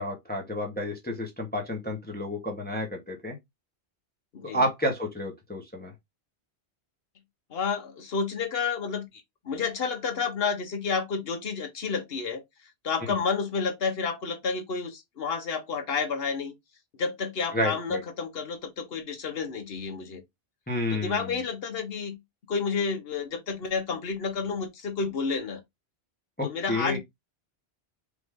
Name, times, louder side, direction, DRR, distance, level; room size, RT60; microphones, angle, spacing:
voice 1, 0.0-3.4 4.5-5.9 13.1-13.2 17.5-18.0 20.7-21.3 26.4-27.0, left 1 dB, 10° left, 0.9 m, -30 dB
voice 2, 7.5-12.4 12.8-16.5 17.0-20.2 20.9-22.2 22.5-25.6 26.4-27.0, left 5 dB, 60° left, 1.2 m, -30 dB
4.8 x 2.6 x 3.5 m
omnidirectional pair, 1.1 m